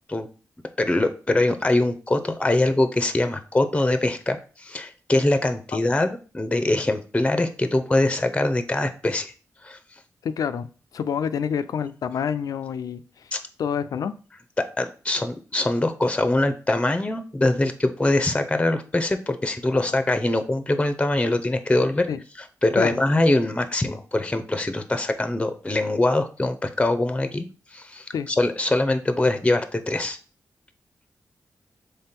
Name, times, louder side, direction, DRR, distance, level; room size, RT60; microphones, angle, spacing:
voice 1, 0.8-9.3 9.6-9.8 13.3-13.4 14.6-22.1 22.6-27.5 27.7-30.2, left 2 dB, 20° left, 0.6 m, -23 dB
voice 2, 10.2-13.3 13.6-14.1 19.7-19.9 22.1-22.2 22.8-22.9 28.1-28.3, left 7 dB, 80° left, 0.3 m, -28 dB
3.7 x 3.3 x 4.3 m
cardioid pair, 60°, 6 cm